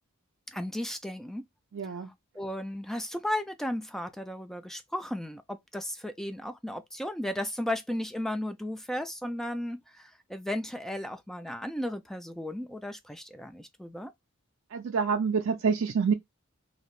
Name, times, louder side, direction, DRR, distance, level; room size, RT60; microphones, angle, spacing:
voice 1, 0.5-1.5 2.3-14.1, left 1 dB, ahead, 0.3 m, -35 dB
voice 2, 1.7-2.1 14.7-16.1, right 5 dB, 65° right, 0.4 m, -27 dB
2.7 x 2.5 x 3.1 m
head